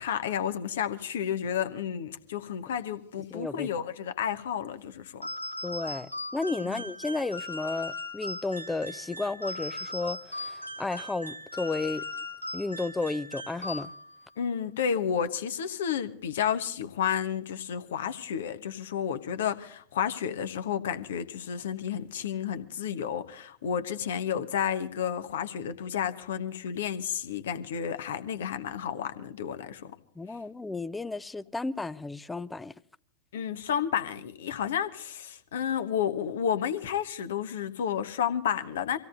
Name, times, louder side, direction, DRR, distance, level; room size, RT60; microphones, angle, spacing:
voice 1, 0.0-5.3 6.6-6.8 14.4-29.9 33.3-39.0, left 8 dB, 60° left, 1.2 m, -31 dB
voice 2, 3.3-3.7 5.6-12.0 12.5-13.9 30.2-32.7, left 3 dB, 10° left, 0.6 m, -33 dB
sound 1, 5.2-14.3, left 1 dB, 85° left, 1.2 m, -38 dB
26.0 x 17.0 x 2.6 m
figure-of-eight pair, 90°, 0 cm